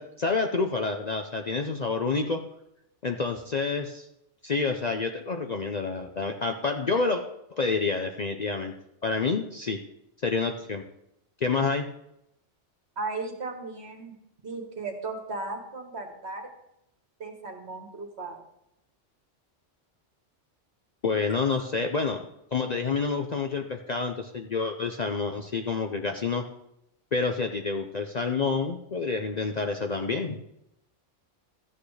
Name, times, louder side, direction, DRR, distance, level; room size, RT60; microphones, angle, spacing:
voice 1, 0.0-2.4 3.0-4.1 4.4-7.2 7.5-8.7 9.0-9.8 10.2-10.8 11.4-11.9 21.0-22.2 22.5-26.4 27.1-30.4, left 4 dB, 45° left, 4 dB, 0.6 m, -28 dB
voice 2, 13.0-14.1 14.4-16.5 17.2-18.4, right 3 dB, 60° right, 4 dB, 1.6 m, -36 dB
13.5 x 8.4 x 3.3 m, 0.81 s
omnidirectional pair, 1.3 m